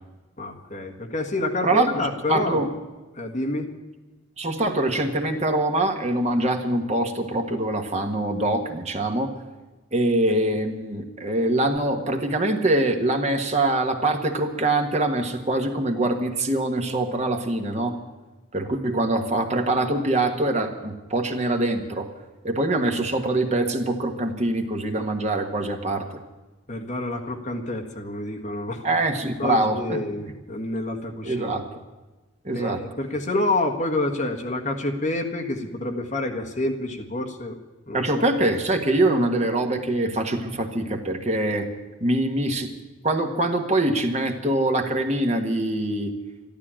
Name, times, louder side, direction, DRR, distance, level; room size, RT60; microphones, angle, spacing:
voice 1, 0.4-2.6 3.1-3.7 26.7-28.8 29.4-31.5 32.5-37.6 37.9-38.2, left 2 dB, 35° left, 3 dB, 1.7 m, -28 dB
voice 2, 1.6-2.7 4.4-9.3 9.9-18.0 18.5-22.1 22.4-26.1 28.8-30.0 31.2-31.7 32.4-32.8 37.9-41.7 42.0-42.7 43.0-46.1, right 2 dB, 35° right, 4 dB, 1.5 m, -24 dB
13.5 x 12.0 x 8.9 m, 1.2 s
head